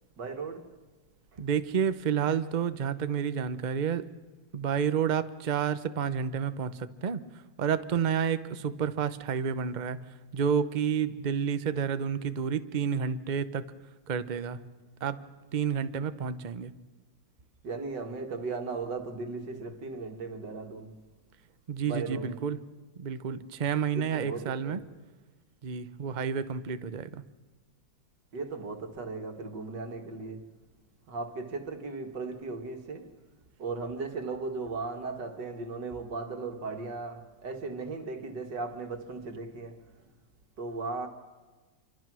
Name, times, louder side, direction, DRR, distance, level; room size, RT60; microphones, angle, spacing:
voice 1, 0.2-0.8 1.3-1.4 17.6-21.0 21.9-22.3 23.9-24.8 28.3-30.5 31.1-33.2 33.6-40.0 40.6-41.1, right 3 dB, 65° right, 2.5 m, -37 dB
voice 2, 1.4-4.1 4.5-7.2 7.6-10.0 10.3-13.7 14.1-14.6 15.0-15.2 15.5-16.7 21.7-22.6 23.0-24.8 25.6-27.2, right 7 dB, 45° right, 0.5 m, -30 dB
27.0 x 24.5 x 6.2 m
omnidirectional pair, 2.0 m